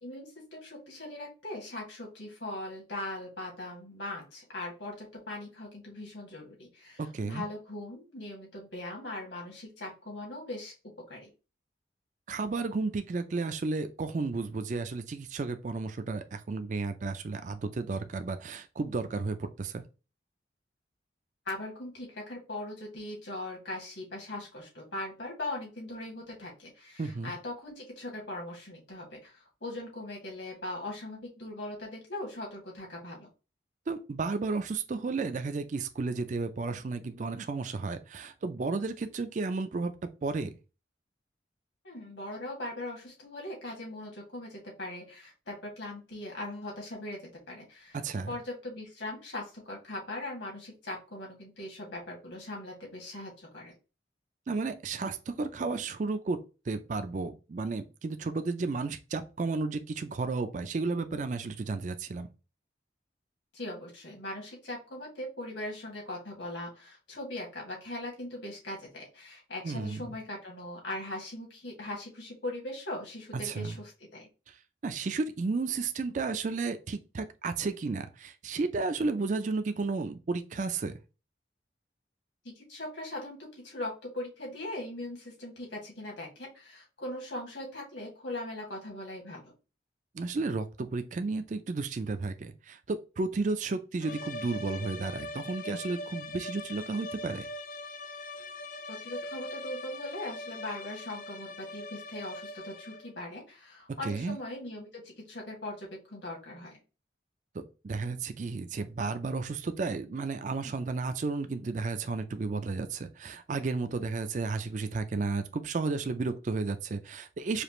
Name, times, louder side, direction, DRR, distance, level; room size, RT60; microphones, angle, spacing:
voice 1, 0.0-10.7 11.1-11.3 21.5-33.3 41.8-48.0 48.3-53.7 63.5-74.3 82.6-89.5 98.9-106.8, left 1 dB, 75° left, 2.1 m, -40 dB
voice 2, 7.0-7.4 12.3-19.8 27.0-27.3 33.9-39.9 40.2-40.5 47.9-48.3 54.5-56.4 56.7-62.3 69.6-70.0 73.4-73.8 74.5-74.6 74.8-80.9 90.1-97.5 104.0-104.4 107.5-117.6, right 3 dB, 40° right, 0.4 m, -33 dB
sound 1, 94.0-103.2, left 2 dB, 45° left, 0.4 m, -41 dB
4.9 x 2.5 x 3.0 m
head